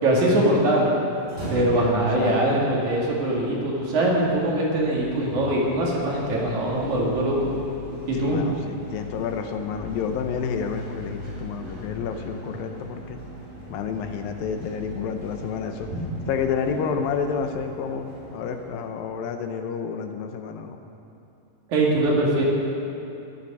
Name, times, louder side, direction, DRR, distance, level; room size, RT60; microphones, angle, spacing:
voice 1, 0.0-0.9 1.5-7.4 8.1-8.4 15.9-16.0 21.7-22.4, right 1 dB, 60° right, -4 dB, 3.4 m, -22 dB
sound 1, 1.1-19.3, left 1 dB, 15° right, 3.8 m, -40 dB
voice 2, 1.7-2.6 8.1-13.2 13.7-15.9 16.3-20.8, left 6 dB, 85° left, 6 dB, 2.6 m, -30 dB
14.0 x 11.5 x 5.5 m, 2.7 s
omnidirectional pair, 4.0 m